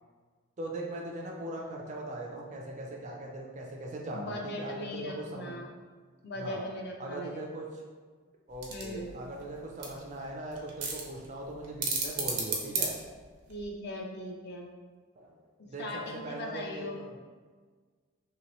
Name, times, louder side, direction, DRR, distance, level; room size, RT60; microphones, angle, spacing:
voice 1, 0.6-5.6 6.3-6.6 7.0-7.8 8.5-12.9 15.2-15.4 15.7-17.2, right 1 dB, 30° right, -1 dB, 0.4 m, -40 dB
voice 2, 4.1-5.7 6.2-7.5 8.7-9.1 13.5-14.7 15.6-17.0, left 1 dB, 45° left, 0 dB, 0.5 m, -39 dB
sound 1, 8.5-13.6, right 4 dB, 85° right, 0.7 m, -35 dB
3.0 x 2.9 x 3.0 m, 1.5 s
head